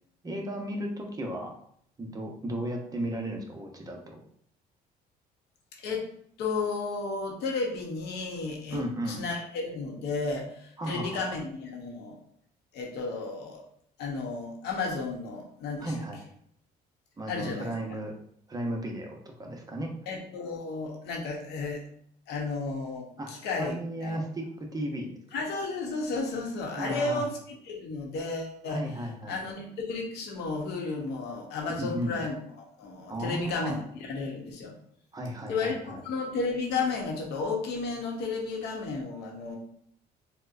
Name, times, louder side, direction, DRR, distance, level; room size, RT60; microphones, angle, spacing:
voice 1, 0.2-1.5 2.0-4.2 8.7-9.3 10.8-11.2 15.8-16.2 17.2-18.1 18.5-20.0 23.2-23.3 23.6-25.2 26.8-27.3 28.7-29.4 31.7-32.1 33.1-33.8 35.1-36.0, right 1 dB, 20° right, 1 dB, 0.7 m, -34 dB
voice 2, 6.4-12.2 12.7-13.6 14.0-15.9 17.3-17.7 20.1-21.8 22.3-24.2 25.3-27.4 27.6-28.8 29.3-34.7 35.4-39.6, left 3 dB, 80° left, 0 dB, 0.9 m, -33 dB
4.2 x 2.1 x 2.5 m, 0.65 s
cardioid pair, 110°, 17 cm